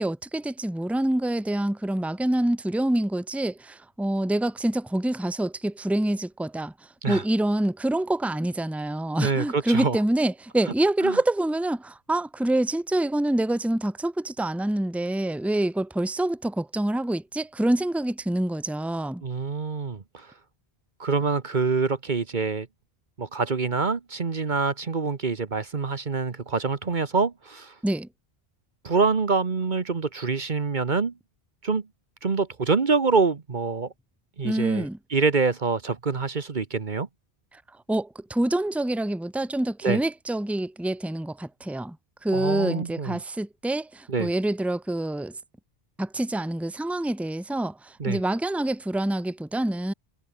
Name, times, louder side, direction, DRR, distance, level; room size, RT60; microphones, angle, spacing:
voice 1, 0.0-6.7 7.1-19.2 27.8-28.1 34.4-35.0 37.5-37.6 37.9-42.0 42.2-45.3 46.0-49.9, right 1 dB, ahead, 1.2 m, -26 dB
voice 2, 9.2-10.0 11.0-11.2 19.2-20.3 21.0-22.7 23.2-27.7 28.8-31.1 31.6-31.8 32.2-33.9 34.4-37.1 39.8-40.0 42.3-43.2 44.1-44.3 48.0-48.2, right 4 dB, 50° right, 1.3 m, -25 dB
omnidirectional pair, 1.0 m